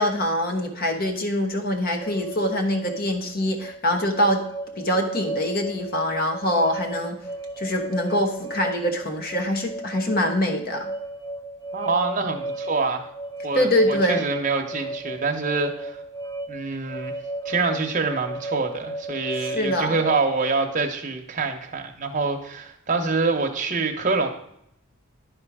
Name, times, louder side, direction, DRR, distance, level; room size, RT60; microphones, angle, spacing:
voice 1, 0.0-4.4 4.8-7.2 7.6-10.9 13.5-14.2 19.4-20.0, left 1 dB, 45° left, 5 dB, 1.2 m, -24 dB
sound 1, 2.0-20.7, right 2 dB, 15° left, 0.6 m, -34 dB
voice 2, 11.7-13.1 13.4-16.0 16.5-17.1 17.4-24.3, right 4 dB, 40° right, 3 dB, 1.0 m, -26 dB
11.0 x 4.4 x 4.9 m, 0.75 s
head